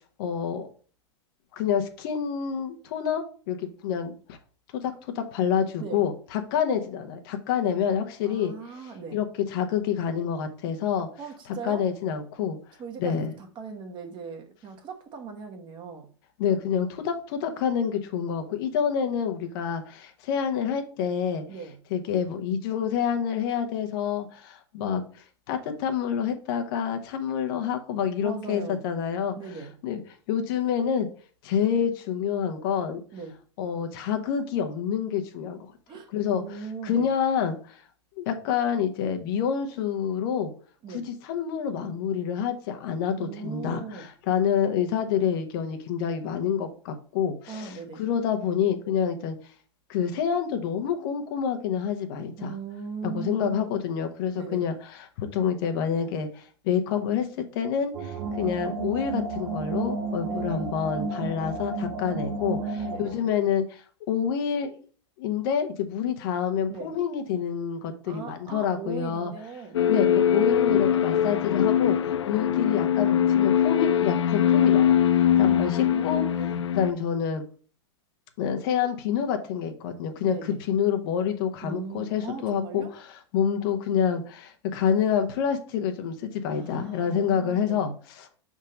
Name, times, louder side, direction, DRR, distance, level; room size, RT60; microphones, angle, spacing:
voice 1, 0.2-0.7 1.5-4.4 4.7-8.5 9.1-9.3 9.5-11.1 11.6-12.6 13.0-13.3 16.4-21.4 21.9-25.0 25.5-29.4 29.8-30.0 30.3-31.1 31.4-33.0 33.6-35.7 36.1-36.4 36.8-37.8 38.2-40.5 41.3-47.7 48.0-49.4 49.9-52.5 53.1-64.7 65.2-69.3 69.9-76.2 76.7-77.4 78.4-80.4 80.7-82.8 83.3-88.3, left 8 dB, 55° left, 1.0 m, -27 dB
voice 2, 8.2-9.2 11.2-11.9 12.8-16.1 21.5-21.8 28.2-28.8 29.4-29.7 33.1-33.4 35.9-37.1 40.8-41.1 43.1-44.1 47.5-48.0 52.4-53.8 54.3-54.6 60.2-60.6 62.8-63.2 66.7-66.9 68.0-70.1 75.3-76.6 80.2-80.6 81.6-82.9 86.5-87.9, right 5 dB, 35° right, 1.3 m, -39 dB
sound 1, 57.9-63.2, right 3 dB, 55° right, 0.9 m, -32 dB
sound 2, 69.7-76.9, left 9 dB, 75° left, 0.4 m, -22 dB
5.4 x 3.7 x 5.2 m
hypercardioid pair, 95°, 14 cm